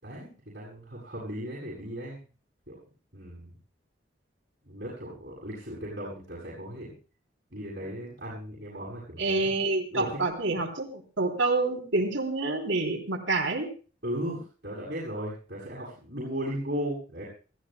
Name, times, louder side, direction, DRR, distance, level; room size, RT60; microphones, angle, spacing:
voice 1, 0.0-2.3 2.7-2.8 3.1-3.5 4.6-7.0 7.5-9.6 9.9-10.1 14.0-17.2, equal, 55° right, -7 dB, 7.8 m, -36 dB
voice 2, 9.2-13.7, right 3 dB, 90° right, 2 dB, 3.3 m, -27 dB
30.0 x 14.5 x 2.2 m, 0.37 s
head